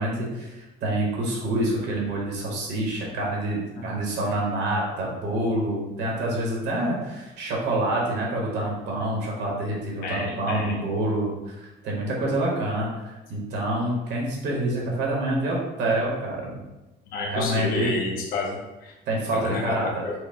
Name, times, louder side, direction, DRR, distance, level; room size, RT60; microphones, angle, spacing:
voice 1, 0.0-16.6 17.2-17.9 19.1-20.0, right 1 dB, 60° right, -2 dB, 1.1 m, -27 dB
voice 2, 10.0-10.8 17.1-18.9 19.3-19.7 20.0-20.1, left 3 dB, 50° left, -1 dB, 0.5 m, -30 dB
4.6 x 2.1 x 3.6 m, 1.0 s
cardioid pair, 180°, 20 cm